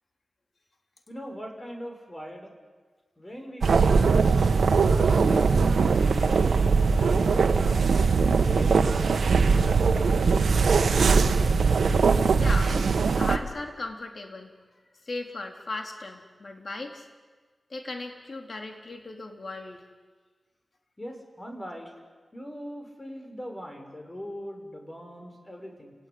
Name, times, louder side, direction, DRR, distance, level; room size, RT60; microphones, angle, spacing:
voice 1, 1.1-2.5 3.2-6.5 7.0-7.8 8.2-9.5 9.9-11.1 21.0-21.9 22.3-25.9, equal, 25° left, 3 dB, 6.0 m, -41 dB
sound 1, 3.6-13.4, right 5 dB, 85° right, 1.3 m, -21 dB
voice 2, 12.4-12.8 13.2-14.5 15.0-17.1 17.7-19.8, left 2 dB, 55° left, 3 dB, 4.0 m, -37 dB
29.5 x 18.5 x 9.8 m, 1.4 s
cardioid pair, 65°, 0 cm